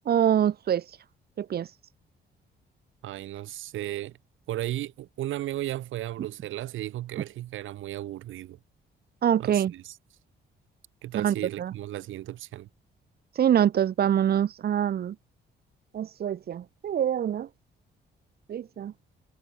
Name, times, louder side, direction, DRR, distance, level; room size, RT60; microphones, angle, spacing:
voice 1, 0.1-0.8 1.4-1.7 9.2-9.7 11.1-11.7 13.4-15.1 15.9-17.5 18.5-18.9, right 9 dB, 50° right, 0.7 m, -25 dB
voice 2, 3.0-4.2 4.5-8.6 9.4-10.0 11.0-12.7, right 14 dB, 85° right, 3.3 m, -35 dB
cardioid pair, 90°, 20 cm